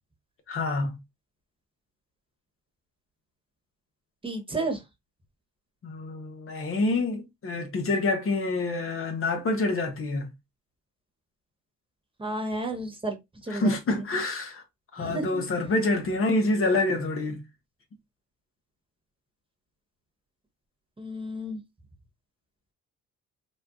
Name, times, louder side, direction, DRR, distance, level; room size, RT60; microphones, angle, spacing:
voice 1, 0.5-1.0 5.8-10.3 13.5-14.6 14.9-17.4, left 2 dB, 45° left, 0.9 m, -27 dB
voice 2, 4.2-4.8 12.2-13.2 13.4-14.0 15.0-15.4 21.0-21.6, right 2 dB, 15° right, 1.1 m, -32 dB
4.2 x 2.3 x 2.4 m
cardioid pair, 90°, 30 cm